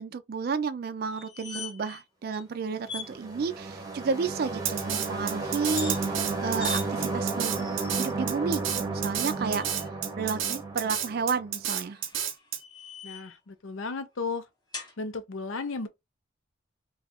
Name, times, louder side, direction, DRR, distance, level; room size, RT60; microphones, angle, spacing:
voice 1, 0.0-6.0 6.4-7.7 8.0-9.9 10.2-12.0, right 5 dB, 50° right, 0.3 m, -31 dB
sound 1, 1.1-2.0 2.3-2.4 2.8-3.1 5.6-6.0 6.6-6.8 7.5-8.1 9.1-9.9 11.8-13.4 14.7-14.9, left 5 dB, 20° left, 0.8 m, -41 dB
sound 2, 2.9-11.6, right 3 dB, 20° right, 0.7 m, -33 dB
Drum kit, 4.7-12.6, right 9 dB, 85° right, 0.7 m, -31 dB
voice 2, 13.0-14.5 15.0-15.9, left 4 dB, 85° left, 0.6 m, -34 dB
2.7 x 2.4 x 4.1 m
head